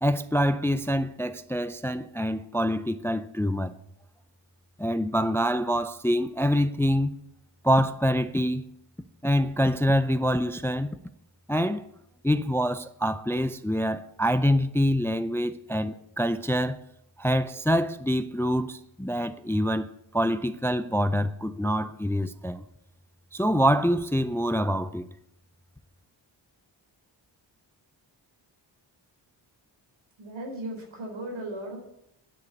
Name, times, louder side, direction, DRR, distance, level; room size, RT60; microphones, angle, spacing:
voice 1, 0.0-3.7 4.8-7.1 7.6-8.6 9.2-11.0 11.5-11.9 12.2-16.8 17.2-22.6 23.3-25.1, equal, 5° left, 0.4 m, -25 dB
voice 2, 30.2-31.8, right 1 dB, 90° right, 4.2 m, -36 dB
9.9 x 6.6 x 8.3 m
cardioid pair, 85°, 46 cm